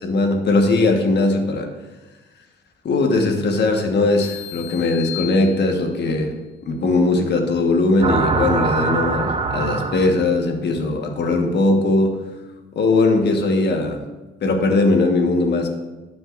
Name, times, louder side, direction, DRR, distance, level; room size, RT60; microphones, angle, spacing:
voice 1, 0.0-1.7 2.8-6.3 6.7-12.1 12.7-14.0 14.4-15.7, left 2 dB, 60° left, 3 dB, 1.4 m, -19 dB
sound 1, 4.2-6.1, left 15 dB, 90° left, 0.7 m, -35 dB
sound 2, 8.0-10.4, right 4 dB, 30° right, 0.7 m, -22 dB
12.0 x 6.3 x 2.6 m, 1.2 s
cardioid pair, 90°, 20 cm